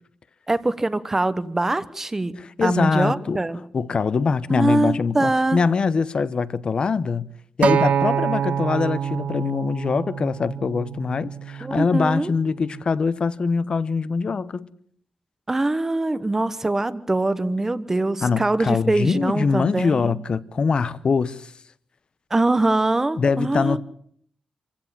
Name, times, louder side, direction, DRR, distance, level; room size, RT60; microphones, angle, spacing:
voice 1, 0.5-3.6 4.5-5.6 11.6-12.3 15.5-20.2 22.3-23.8, right 2 dB, 15° right, 1.0 m, -23 dB
voice 2, 2.4-3.4 3.7-7.3 7.6-14.7 18.2-21.5 23.2-23.8, left 5 dB, 40° left, 0.9 m, -23 dB
Acoustic guitar, 7.6-11.9 12.7-12.8, right 8 dB, 70° right, 1.1 m, -26 dB
27.0 x 16.0 x 7.4 m
wide cardioid pair, 135°, 2 cm